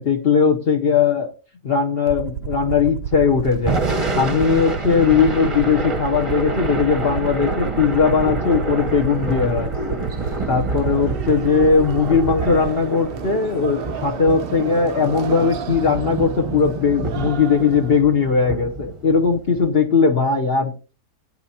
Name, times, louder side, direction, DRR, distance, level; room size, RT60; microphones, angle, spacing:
voice 1, 0.0-1.3 1.6-10.0 10.5-20.7, left 5 dB, 45° left, 2 dB, 0.9 m, -19 dB
Aircraft, 2.1-12.7, right 7 dB, 85° right, 1.3 m, -30 dB
Thunder / Rain, 3.5-19.8, right 2 dB, 25° right, 0.9 m, -28 dB
sound 1, 8.5-18.0, right 9 dB, 65° right, 0.5 m, -35 dB
15.0 x 9.0 x 2.8 m, 0.35 s
omnidirectional pair, 1.8 m